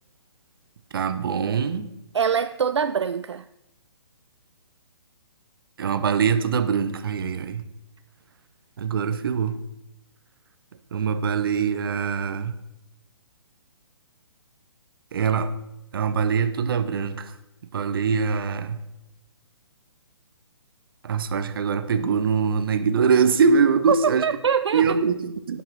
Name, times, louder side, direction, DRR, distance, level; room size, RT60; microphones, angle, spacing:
voice 1, 0.9-1.9 5.8-7.7 8.8-9.6 10.9-12.6 15.1-15.5 15.9-17.3 17.7-18.8 21.0-24.3 24.7-25.6, right 6 dB, 50° right, 0.9 m, -23 dB
voice 2, 2.1-3.5 23.9-25.0, right 7 dB, 70° right, 0.4 m, -24 dB
16.0 x 5.8 x 4.3 m
figure-of-eight pair, 135°, 15 cm